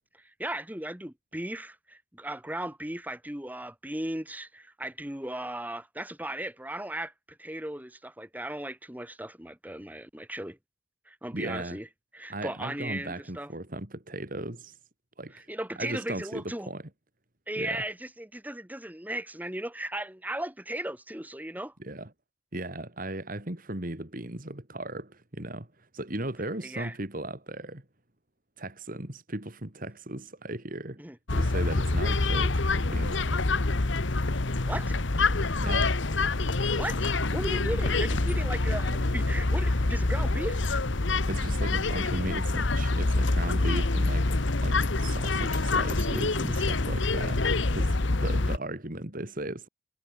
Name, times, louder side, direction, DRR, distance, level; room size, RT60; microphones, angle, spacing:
voice 1, 0.1-10.6 11.1-11.9 12.1-13.5 15.3-16.7 17.5-21.7 26.6-27.0 31.0-31.2 34.6-35.0 36.8-37.0 37.3-40.6, right 1 dB, 10° right, 1.8 m, -36 dB
voice 2, 11.3-11.8 12.3-14.8 15.2-15.5 15.8-16.8 17.6-17.8 21.8-22.1 22.5-27.8 28.6-31.0 31.3-33.4 35.6-35.9 41.3-44.3 44.6-49.7, right 1 dB, 45° right, 2.7 m, -37 dB
sound 1, 31.3-48.6, left 2 dB, 70° left, 1.3 m, -26 dB
head